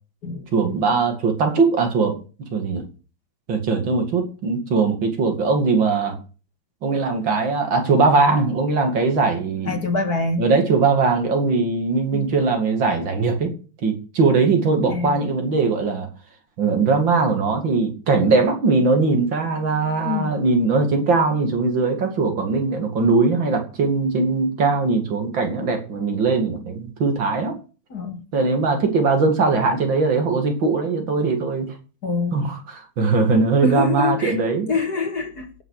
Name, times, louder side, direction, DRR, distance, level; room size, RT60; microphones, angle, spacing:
voice 1, 0.5-2.2 2.5-2.8 3.5-6.2 6.8-9.8 10.4-13.5 13.8-16.1 16.6-27.6 28.3-31.7 32.3-34.7, right 4 dB, 65° right, 3.0 m, -20 dB
voice 2, 9.7-10.5 12.1-12.3 14.9-15.2 20.0-20.4 27.9-28.2 32.0-32.5 33.6-34.4 34.7-35.6, left 3 dB, 50° left, 2.1 m, -25 dB
16.5 x 6.2 x 6.6 m
omnidirectional pair, 2.3 m